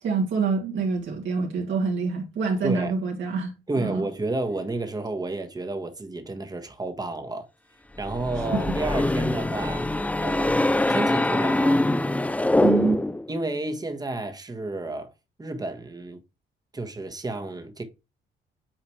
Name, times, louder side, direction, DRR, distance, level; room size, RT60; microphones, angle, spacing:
voice 1, 0.0-4.0 8.5-8.8 12.6-13.0, right 4 dB, 75° right, 2.6 m, -26 dB
voice 2, 2.6-2.9 3.7-7.5 8.0-9.9 10.2-10.5 10.9-11.8 13.3-15.1 15.4-16.2 16.7-17.8, right 2 dB, 20° right, 1.3 m, -31 dB
sound 1, 8.0-13.3, left 1 dB, 5° left, 0.4 m, -23 dB
8.8 x 4.0 x 3.2 m
cardioid pair, 90°, 20 cm